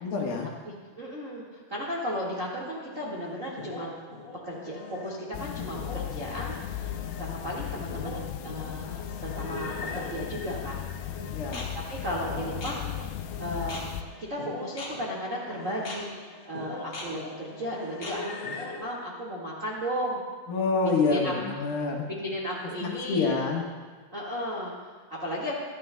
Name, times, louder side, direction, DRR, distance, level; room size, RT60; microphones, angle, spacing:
voice 1, 0.0-0.5 11.3-11.7 20.5-22.1 22.8-23.6, left 4 dB, 70° left, -1 dB, 3.2 m, -27 dB
voice 2, 0.9-3.9 4.4-10.9 11.9-13.9 14.2-18.3 18.8-20.2 20.8-21.6 22.2-23.4 24.1-25.6, equal, 45° right, -4 dB, 1.0 m, -35 dB
sound 1, 2.9-18.8, left 2 dB, 50° left, 1.4 m, -41 dB
sound 2, 5.3-14.0, left 12 dB, 85° left, 2.5 m, -37 dB
19.0 x 14.0 x 2.3 m, 1.5 s
omnidirectional pair, 4.6 m